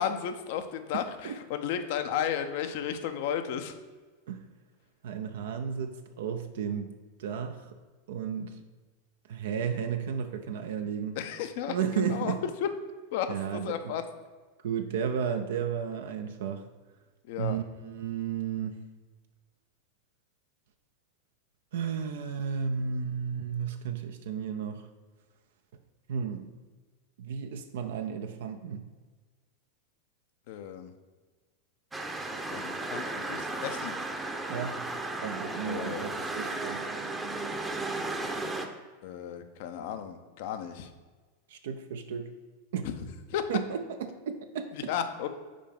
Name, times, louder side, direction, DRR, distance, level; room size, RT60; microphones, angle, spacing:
voice 1, 0.0-3.7 11.2-12.3 12.6-12.7 13.1-14.0 17.3-17.6 30.5-30.9 32.5-33.9 35.6-36.1 39.0-40.9 42.8-43.5 44.7-45.3, left 9 dB, 60° left, 9 dB, 0.6 m, -34 dB
voice 2, 0.9-1.4 4.3-4.4 5.0-6.9 7.2-7.7 8.1-8.6 9.3-11.2 11.7-12.4 13.3-13.9 14.6-16.6 17.4-18.8 21.7-24.8 26.1-26.5 27.2-28.8 34.5-34.8 35.2-36.8 41.5-42.3 42.7-42.9 43.5-44.9, right 7 dB, 70° right, 7 dB, 0.4 m, -33 dB
sound 1, 31.9-38.7, right 2 dB, 10° right, 0.7 m, -35 dB
5.1 x 4.5 x 5.2 m, 1.4 s
hypercardioid pair, 90°, 0 cm